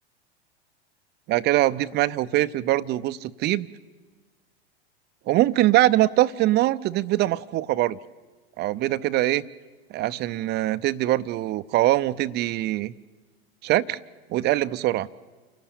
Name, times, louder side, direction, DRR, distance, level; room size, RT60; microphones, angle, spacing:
voice 1, 1.3-3.7 5.3-8.0 8.6-9.5 9.9-12.9 13.6-14.0 14.3-15.1, right 15 dB, 35° right, 15 dB, 0.5 m, -23 dB
28.0 x 12.5 x 8.5 m, 1.3 s
hypercardioid pair, 90°, 31 cm